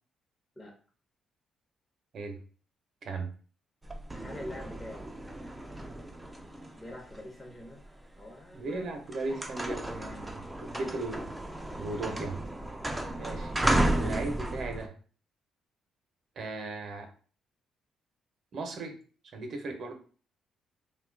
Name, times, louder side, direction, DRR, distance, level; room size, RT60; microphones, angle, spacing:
sound 1, 3.8-8.0 8.6-8.8 9.1-14.9, right 1 dB, 10° right, 0.4 m, -33 dB
voice 1, 4.1-5.1 6.8-7.8 8.2-8.9 10.6-11.0 11.9-12.1, left 1 dB, 20° left, -1 dB, 0.8 m, -45 dB
voice 2, 8.5-11.3 11.8-12.4 13.1-13.5 13.9-14.9 16.4-17.1 18.5-19.0 19.3-19.9, right 3 dB, 60° right, 5 dB, 0.7 m, -37 dB
2.7 x 2.2 x 3.7 m, 0.41 s
cardioid pair, 90°, 0 cm